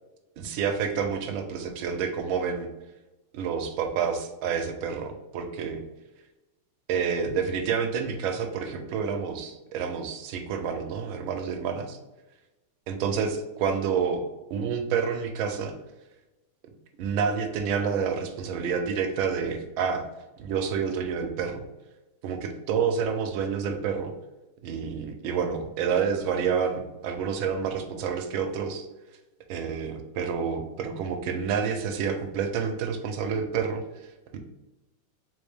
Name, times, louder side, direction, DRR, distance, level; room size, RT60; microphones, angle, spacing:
voice 1, 0.4-2.7 3.3-5.8 6.9-12.0 12.9-14.2 14.5-15.7 17.0-20.0 20.4-21.6 22.2-24.1 24.6-28.9 29.5-33.8 34.3-34.4, right 6 dB, 80° right, 5 dB, 1.4 m, -28 dB
3.8 x 3.5 x 3.4 m, 1.0 s
omnidirectional pair, 2.3 m